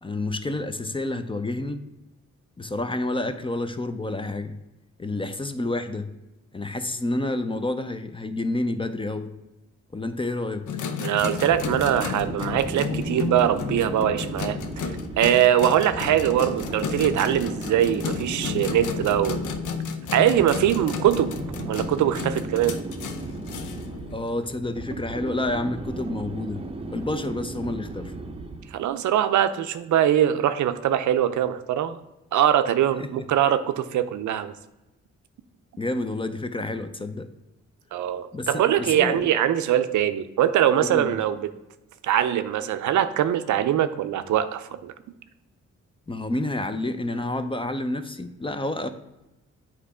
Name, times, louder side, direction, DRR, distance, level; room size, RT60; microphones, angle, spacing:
voice 1, 0.0-1.8 2.6-4.5 5.0-6.1 6.5-9.3 9.9-10.7 24.1-26.6 26.9-28.1 33.0-33.3 35.8-37.3 38.3-39.3 40.8-41.2 46.1-48.9, left 2 dB, 15° left, 9 dB, 0.5 m, -29 dB
sound 1, 10.7-24.5, left 6 dB, 80° left, 0.7 m, -32 dB
voice 2, 11.0-14.6 15.2-19.4 20.1-21.3 21.7-22.8 28.7-32.0 32.3-34.5 37.9-41.5 42.0-44.9, right 11 dB, 75° right, 11 dB, 0.5 m, -22 dB
sound 2, 11.2-28.8, right 3 dB, 20° right, 0.7 m, -36 dB
8.1 x 3.0 x 4.8 m, 0.98 s
cardioid pair, 75°, 30 cm